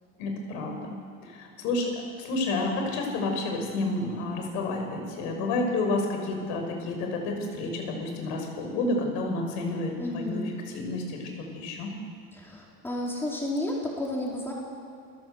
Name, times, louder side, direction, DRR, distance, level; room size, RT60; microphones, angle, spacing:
voice 1, 0.2-0.8 1.3-1.9 2.2-11.9, left 2 dB, 75° left, 3 dB, 6.2 m, -30 dB
voice 2, 10.0-10.5 12.3-14.5, left 1 dB, 10° left, -3 dB, 4.5 m, -32 dB
28.0 x 17.5 x 8.1 m, 2.3 s
cardioid pair, 175°, 29 cm